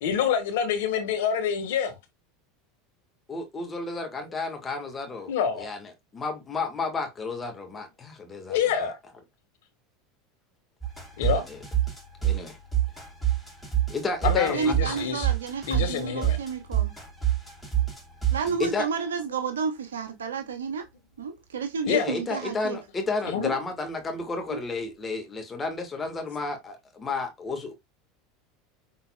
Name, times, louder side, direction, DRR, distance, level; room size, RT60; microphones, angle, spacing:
voice 1, 0.0-1.9 5.3-5.7 8.5-9.0 11.2-11.4 14.2-15.3 15.7-16.4 21.8-22.0 23.3-23.5, left 8 dB, 70° left, 1.5 m, -26 dB
voice 2, 3.3-8.9 11.2-11.6 12.2-12.6 13.9-14.9 18.6-18.8 21.9-27.7, left 3 dB, 25° left, 1.5 m, -32 dB
sound 1, 10.8-18.7, right 12 dB, ahead, 3.1 m, -27 dB
voice 3, 14.5-16.9 18.3-20.9 21.2-22.8, right 5 dB, 85° right, 0.7 m, -31 dB
6.0 x 3.9 x 2.2 m
hypercardioid pair, 85°, 0 cm